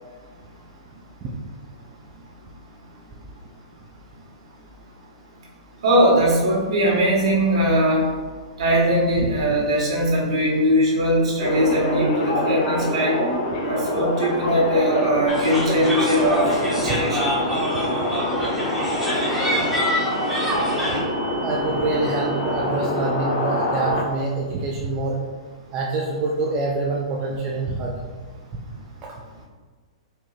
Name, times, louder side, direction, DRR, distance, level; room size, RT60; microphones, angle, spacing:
voice 1, 5.8-8.1 8.6-13.2 13.7-17.2, equal, 65° right, -4 dB, 1.4 m, -20 dB
sound 1, 11.4-24.0, left 1 dB, 40° left, 0.7 m, -25 dB
sound 2, 15.3-21.0, equal, 5° right, 1.4 m, -26 dB
voice 2, 21.4-25.2 25.7-27.9, right 3 dB, 30° right, -3 dB, 0.5 m, -26 dB
4.6 x 2.9 x 2.4 m, 1.5 s
hypercardioid pair, 115°, 3 cm